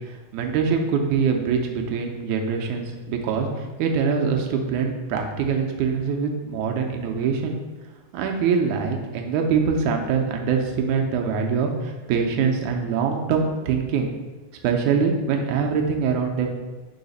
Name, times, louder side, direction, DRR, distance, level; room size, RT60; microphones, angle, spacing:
voice 1, 0.0-7.6 8.1-14.1 14.6-16.5, right 6 dB, 85° right, 2 dB, 2.0 m, -24 dB
5.0 x 4.7 x 5.3 m, 1.3 s
omnidirectional pair, 3.5 m